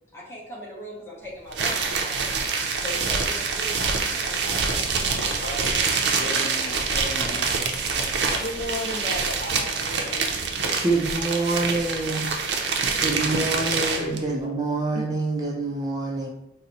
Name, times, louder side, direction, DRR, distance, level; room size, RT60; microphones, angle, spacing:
voice 1, 0.1-2.3 2.8-5.4, equal, 15° left, -6 dB, 1.0 m, -39 dB
sound 1, 1.5-14.2, right 4 dB, 75° right, 0.5 m, -26 dB
voice 2, 5.4-7.7 8.4-10.3 13.7-14.5 14.9-15.0, left 1 dB, 45° left, 1 dB, 0.4 m, -35 dB
voice 3, 10.8-12.3 13.0-16.3, right 3 dB, 20° right, -2 dB, 0.4 m, -26 dB
3.9 x 2.0 x 4.1 m, 0.85 s
head